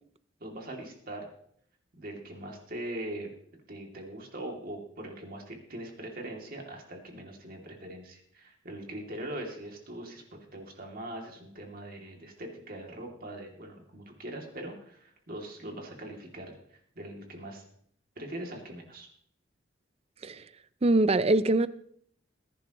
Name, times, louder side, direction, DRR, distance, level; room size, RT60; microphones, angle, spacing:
voice 1, 0.4-1.3 2.0-3.3 3.7-10.2 10.5-17.6 18.2-19.1, right 1 dB, 50° right, 2.6 m, -41 dB
voice 2, 20.8-21.7, right 2 dB, 35° right, 0.5 m, -23 dB
20.0 x 10.5 x 3.0 m
head